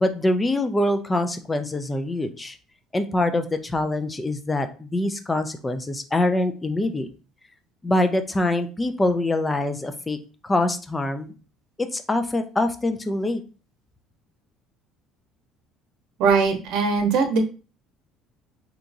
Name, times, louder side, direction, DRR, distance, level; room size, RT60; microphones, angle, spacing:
voice 1, 0.0-2.6 2.9-7.1 7.8-10.2 10.4-11.3 11.8-13.4, left 1 dB, 15° left, 8 dB, 0.4 m, -24 dB
voice 2, 16.2-17.4, right 5 dB, 65° right, 5 dB, 0.9 m, -20 dB
3.6 x 2.9 x 2.6 m, 0.35 s
cardioid pair, 145°, 0 cm